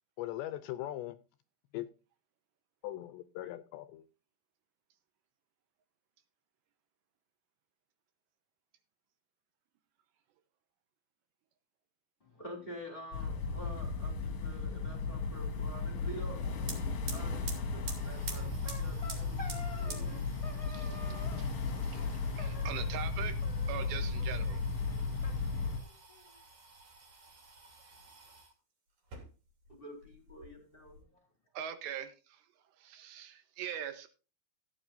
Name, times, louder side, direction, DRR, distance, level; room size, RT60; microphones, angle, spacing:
voice 1, 0.2-1.2 1.7-1.9 2.8-4.1, left 14 dB, 80° left, 2.7 m, -40 dB
voice 2, 12.2-16.4 17.1-20.4 29.7-31.2, equal, 15° left, 2.3 m, -48 dB
sound 1, 13.1-25.8, left 4 dB, 50° left, 2.3 m, -35 dB
sound 2, 16.6-28.5 29.0-29.8 30.0-31.0, right 3 dB, 45° right, 4.0 m, -49 dB
sound 3, 18.3-20.2 20.4-21.5 22.4-23.1 23.4-24.2 24.5-24.6 24.9-25.0 25.2-26.3, left 2 dB, 30° left, 0.6 m, -49 dB
voice 3, 20.7-21.5 21.8-23.4 23.7-24.6 31.5-32.5 32.8-34.1, right 9 dB, 75° right, 3.0 m, -42 dB
16.0 x 9.7 x 2.6 m
omnidirectional pair, 5.4 m